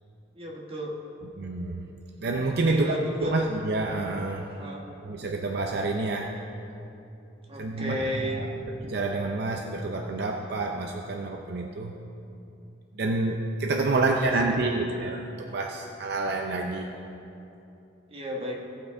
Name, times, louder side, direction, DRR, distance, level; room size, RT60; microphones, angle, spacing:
voice 1, 0.3-0.9 2.6-3.5 4.6-4.8 7.5-8.4 14.0-14.1 14.5-14.6 18.1-18.6, equal, 30° right, -2 dB, 1.3 m, -33 dB
voice 2, 1.4-1.8 2.2-2.9 3.2-4.5 5.0-6.3 7.6-8.0 8.2-8.5 8.8-11.9 13.0-16.9, right 2 dB, 60° right, 2 dB, 0.5 m, -28 dB
17.0 x 5.8 x 3.8 m, 2.8 s
head